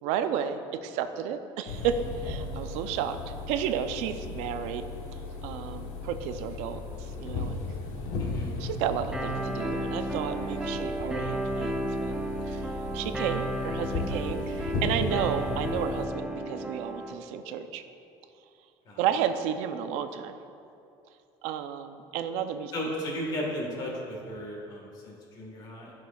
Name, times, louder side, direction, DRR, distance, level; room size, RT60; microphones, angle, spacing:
voice 1, 0.0-3.2 3.5-4.8 5.4-7.6 8.6-12.1 12.5-12.7 12.9-17.8 19.0-20.4 21.4-22.7, right 8 dB, 85° right, 9 dB, 0.5 m, -32 dB
sound 1, 1.7-16.1, left 3 dB, 75° left, 1.1 m, -36 dB
voice 2, 8.2-8.5 18.8-19.0 22.7-25.9, equal, 40° left, -2 dB, 1.5 m, -35 dB
sound 2, 9.1-17.1, right 1 dB, 5° right, 0.6 m, -33 dB
14.0 x 6.1 x 2.3 m, 2.7 s
cardioid pair, 160°, 11 cm